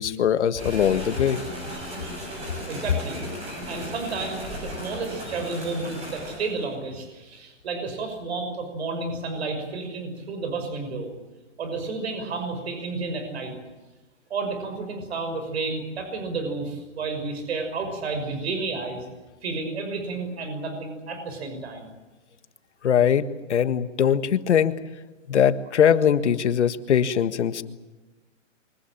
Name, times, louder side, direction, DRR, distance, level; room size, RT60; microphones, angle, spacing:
voice 1, 0.0-1.4 22.8-24.8 25.3-27.6, left 8 dB, 65° left, 1.7 m, -21 dB
sound 1, 0.5-6.6, equal, 15° right, 7.1 m, -36 dB
voice 2, 2.7-3.2 3.7-11.1 11.6-13.5 14.3-19.1 19.4-21.9, right 3 dB, 55° right, 6.0 m, -31 dB
24.0 x 20.5 x 8.8 m
hypercardioid pair, 170°, 37 cm